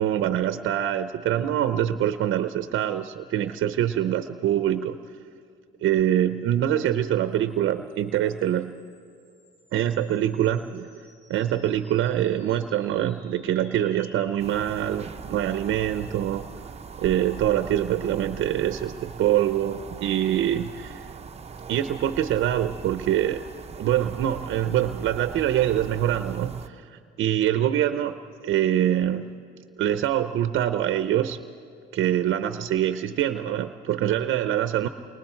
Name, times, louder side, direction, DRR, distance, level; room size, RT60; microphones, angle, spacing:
voice 1, 0.0-5.0 5.8-8.8 9.7-11.0 11.3-16.5 17.0-21.1 21.7-23.4 23.8-28.2 28.4-29.3 29.8-31.4 31.9-34.9, right 11 dB, 80° right, 10 dB, 0.7 m, -24 dB
sound 1, 7.4-18.1, left 1 dB, 65° left, 6.7 m, -57 dB
sound 2, 14.4-26.7, right 5 dB, 30° right, 0.8 m, -40 dB
29.0 x 23.0 x 4.5 m, 2.4 s
cardioid pair, 90°, 20 cm